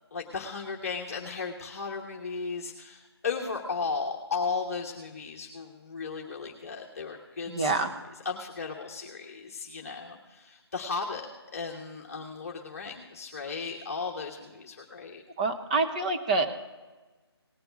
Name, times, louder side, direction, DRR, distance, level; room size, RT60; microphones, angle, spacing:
voice 1, 0.1-7.7 8.2-11.3 11.5-15.2, left 4 dB, 35° left, 0 dB, 1.1 m, -35 dB
voice 2, 7.5-7.9 15.4-16.5, right 3 dB, 15° right, 4 dB, 0.7 m, -26 dB
18.5 x 6.8 x 5.1 m, 1.3 s
figure-of-eight pair, 160°, 14 cm